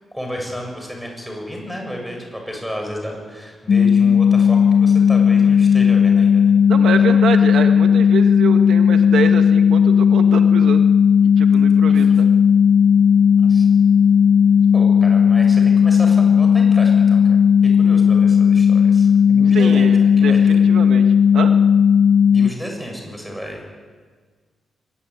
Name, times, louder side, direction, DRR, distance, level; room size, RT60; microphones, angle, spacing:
voice 1, 0.1-6.6 7.0-7.1 11.9-12.1 13.4-13.7 14.7-20.6 22.3-23.7, equal, ahead, 2 dB, 7.1 m, -32 dB
sound 1, 3.7-22.5, left 7 dB, 50° left, 0.7 m, -14 dB
voice 2, 6.7-10.8 11.4-12.3 19.5-21.0 21.3-21.5, right 6 dB, 80° right, 6 dB, 1.6 m, -25 dB
23.5 x 21.0 x 9.6 m, 1.5 s
wide cardioid pair, 140°, 0 cm